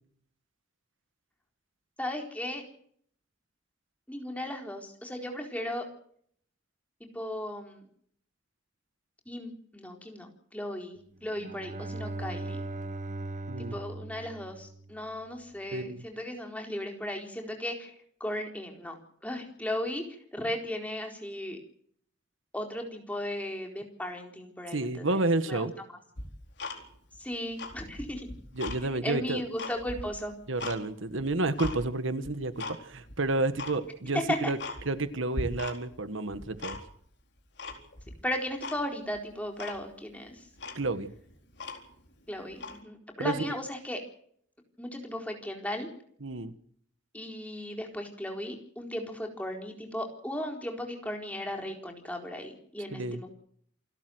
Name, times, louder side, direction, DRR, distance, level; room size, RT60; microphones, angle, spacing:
voice 1, 2.0-2.6 4.1-5.8 7.0-7.8 9.3-12.6 13.6-17.9 18.2-19.0 19.2-20.0 20.3-21.6 22.5-25.7 27.2-28.3 29.0-30.3 34.1-34.5 38.2-40.4 42.3-44.0 44.8-45.9 47.1-53.3, left 1 dB, 5° left, 2 dB, 4.2 m, -36 dB
Bowed string instrument, 11.2-15.3, right 2 dB, 40° right, 0.9 m, -39 dB
voice 2, 15.7-16.0 24.7-25.7 28.5-29.4 30.5-34.6 34.8-36.8 40.7-41.1 43.2-43.3 46.2-46.5 52.9-53.2, right 2 dB, 85° right, 12 dB, 1.5 m, -30 dB
Tick-tock, 26.2-27.2 27.5-28.8 29.2-30.8 31.2-31.8 32.2-32.8 33.1-33.2 33.5-33.8 34.2-34.3 34.6-35.1 35.3-36.0 36.3-37.1 37.6-38.2 38.6-38.8 39.1-39.2 39.6-39.8 40.3-40.4 40.6-42.1 42.5-42.8, left 2 dB, 60° left, 4.2 m, -39 dB
28.0 x 12.5 x 7.9 m, 0.63 s
head